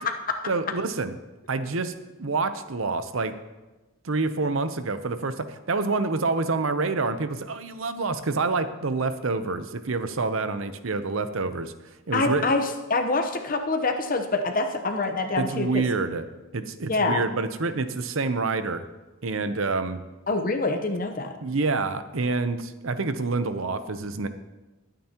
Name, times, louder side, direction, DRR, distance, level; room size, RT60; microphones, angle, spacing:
voice 1, 0.5-1.1 1.5-1.9 2.2-3.4 4.0-11.7 12.1-12.4 15.4-16.3 16.5-18.8 19.2-20.0 21.4-24.3, right 3 dB, 65° right, 10 dB, 0.7 m, -27 dB
voice 2, 12.1-15.8 16.9-17.3 20.3-21.3, left 3 dB, 40° left, 5 dB, 0.9 m, -25 dB
20.5 x 9.2 x 3.0 m, 1.1 s
head